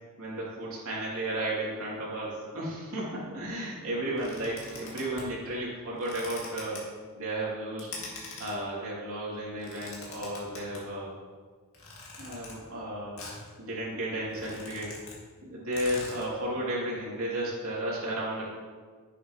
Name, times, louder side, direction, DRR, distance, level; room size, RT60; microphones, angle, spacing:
voice 1, 0.2-6.8 7.1-7.9 8.4-11.1 12.2-13.2 13.6-14.9 15.4-18.5, right 1 dB, 80° right, -6 dB, 2.9 m, -33 dB
sound 1, 4.2-5.3 5.9-6.8 7.8-8.6 9.4-10.8 11.7-12.6 13.2-13.5 13.9-14.0 14.2-15.2 15.4-15.5 15.7-16.3, left 3 dB, 70° left, 2.3 m, -43 dB
10.5 x 8.3 x 3.1 m, 1.5 s
head